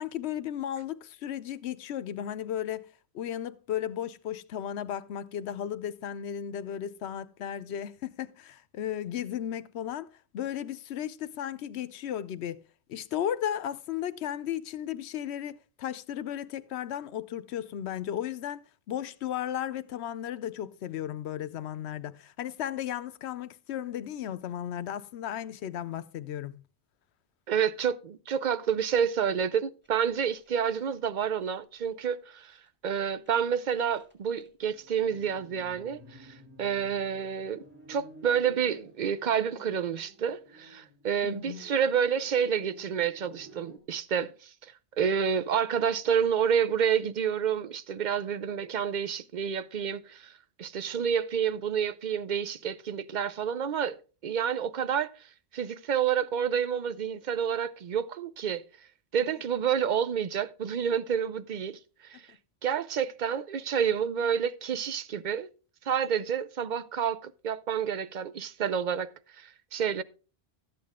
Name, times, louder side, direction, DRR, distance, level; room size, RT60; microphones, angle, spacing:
voice 1, 0.0-2.8 3.1-10.1 10.3-12.6 12.9-26.6 41.2-41.6, left 10 dB, 80° left, 0.9 m, -35 dB
voice 2, 27.5-32.6 32.8-37.6 37.9-50.3 50.6-55.1 55.5-58.6 59.1-62.2 62.6-65.5 65.9-69.1 69.4-70.0, right 8 dB, 55° right, 0.6 m, -29 dB
sound 1, 29.8-31.6 31.9-32.1 32.4-32.7 33.0-43.8, right 1 dB, 10° right, 2.4 m, -53 dB
13.0 x 8.5 x 3.6 m
omnidirectional pair, 1.1 m